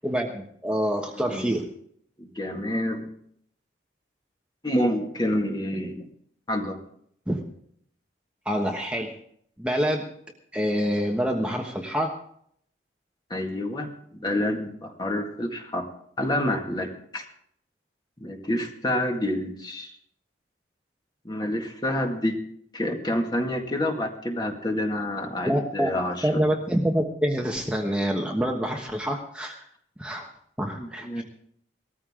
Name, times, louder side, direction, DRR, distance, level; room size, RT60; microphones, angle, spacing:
voice 1, 0.0-1.6 7.3-7.4 8.4-9.1 9.6-10.1 10.5-12.2 25.4-25.9 26.2-29.6 30.0-30.3 30.6-31.2, equal, 5° right, 0 dB, 1.2 m, -26 dB
voice 2, 1.1-1.5 2.2-3.1 4.6-6.1 6.5-6.8 13.3-15.9 16.2-17.2 18.2-20.0 21.2-22.4 22.7-26.4 30.8-31.2, left 1 dB, 20° left, 3 dB, 2.0 m, -28 dB
19.0 x 14.5 x 3.8 m, 0.66 s
head